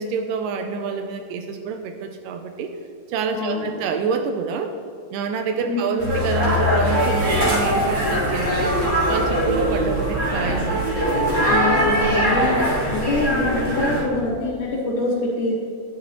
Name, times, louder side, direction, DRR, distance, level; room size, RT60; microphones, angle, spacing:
voice 1, 0.0-2.7 3.1-4.7 5.1-8.8 9.1-10.9, right 5 dB, 80° right, 6 dB, 2.1 m, -27 dB
voice 2, 3.3-3.7 5.6-5.8 11.5-15.6, left 2 dB, 65° left, -4 dB, 2.8 m, -24 dB
sound 1, 6.0-14.0, equal, 35° right, 1.1 m, -21 dB
11.0 x 6.2 x 2.9 m, 2.2 s
omnidirectional pair, 4.0 m